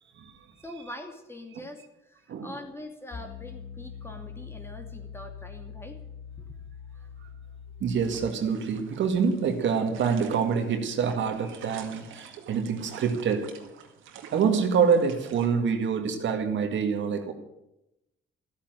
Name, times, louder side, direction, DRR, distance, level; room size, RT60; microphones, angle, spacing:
voice 1, 0.6-6.0 6.4-6.5 6.9-7.1, left 1 dB, 10° left, 2.7 m, -43 dB
Piano, 3.1-8.2, left 7 dB, 60° left, 2.9 m, -43 dB
voice 2, 7.8-13.6 14.3-17.3, right 6 dB, 70° right, 1.9 m, -26 dB
sound 1, 8.0-15.5, right 8 dB, 90° right, 2.1 m, -49 dB
14.0 x 9.0 x 9.4 m
cardioid pair, 90°, 20 cm